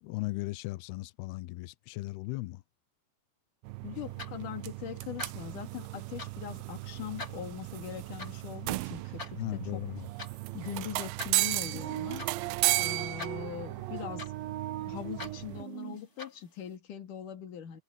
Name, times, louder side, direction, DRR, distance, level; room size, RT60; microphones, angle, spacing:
voice 1, 0.0-2.6 9.4-10.1, left 20 dB, 80° left, 2.6 m, -37 dB
sound 1, 3.6-15.6, right 21 dB, 85° right, 2.2 m, -35 dB
voice 2, 3.8-9.9 10.5-12.3 12.8-14.5 14.8-17.8, left 10 dB, 55° left, 3.7 m, -41 dB
sound 2, 3.9-16.7, left 2 dB, 25° left, 3.2 m, -48 dB
sound 3, 11.6-16.0, right 14 dB, 70° right, 2.8 m, -40 dB
omnidirectional pair, 4.9 m